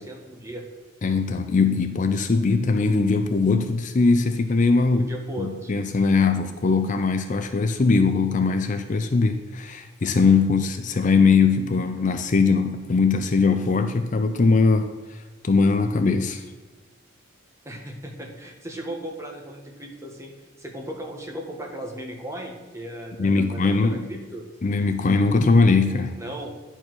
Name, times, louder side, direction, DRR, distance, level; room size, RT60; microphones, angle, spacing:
voice 1, 0.1-0.6 4.9-5.7 17.6-20.3 20.6-24.4 26.1-26.5, right 1 dB, 15° right, 1 dB, 1.3 m, -36 dB
voice 2, 1.0-5.1 5.4-14.9 15.4-16.4 23.2-24.1 24.6-26.2, left 4 dB, 40° left, 8 dB, 0.5 m, -20 dB
10.5 x 4.5 x 6.1 m, 1.4 s
head